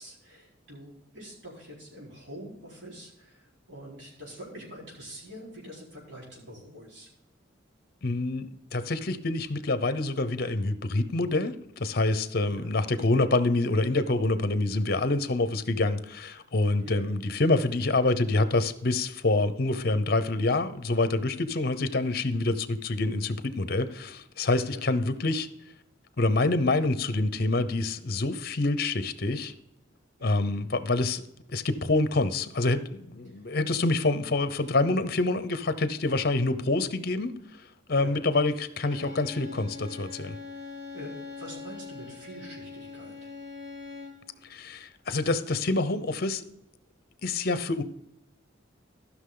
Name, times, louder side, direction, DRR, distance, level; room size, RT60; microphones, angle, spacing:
voice 1, 0.0-3.4 3.7-7.1 12.5-12.7 16.8-17.0 24.7-24.8 30.2-30.5 37.9-38.2 40.9-43.3, equal, 65° right, -4 dB, 4.4 m, -45 dB
voice 2, 8.0-25.5 26.2-29.5 30.2-31.2 31.5-37.3 37.9-40.3 44.5-46.4 47.2-47.8, left 2 dB, 50° left, 12 dB, 0.8 m, -26 dB
Bowed string instrument, 38.8-44.3, left 4 dB, 80° right, 4.1 m, -42 dB
14.5 x 6.2 x 3.9 m, 0.81 s
head